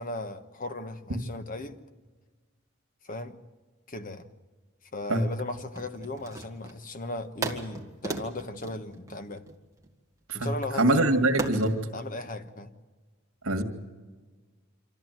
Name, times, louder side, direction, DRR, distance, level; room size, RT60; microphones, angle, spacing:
voice 1, 0.0-1.8 3.1-3.4 3.9-4.3 4.9-9.4 10.3-11.2 11.9-12.7, left 2 dB, 40° left, 1.2 m, -37 dB
sound 1, 5.7-6.9 7.4-9.9 11.4-11.8, right 3 dB, 15° right, 2.0 m, -36 dB
voice 2, 10.3-11.7 13.4-13.6, right 1 dB, 80° right, 2.2 m, -24 dB
26.5 x 14.0 x 9.1 m
head